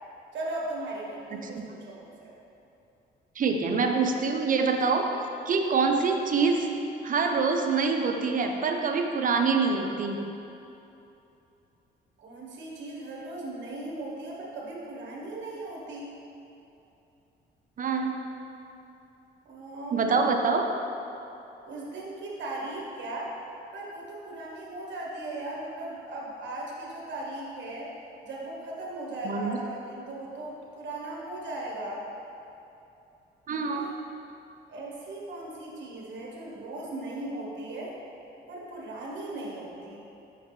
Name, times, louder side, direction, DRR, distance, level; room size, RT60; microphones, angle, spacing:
voice 1, 0.3-2.3 12.2-16.1 19.4-20.2 21.7-23.3 23.7-27.9 28.2-32.0 33.7-33.9 34.7-37.9 38.5-40.0, right 2 dB, 65° right, -4 dB, 1.3 m, -38 dB
voice 2, 3.4-5.1 5.5-6.7 7.0-10.2 17.8-18.1 19.9-20.7 29.2-29.6 33.5-33.9, right 4 dB, 45° right, 4 dB, 0.6 m, -25 dB
5.7 x 5.6 x 3.2 m, 2.8 s
cardioid pair, 90°, 20 cm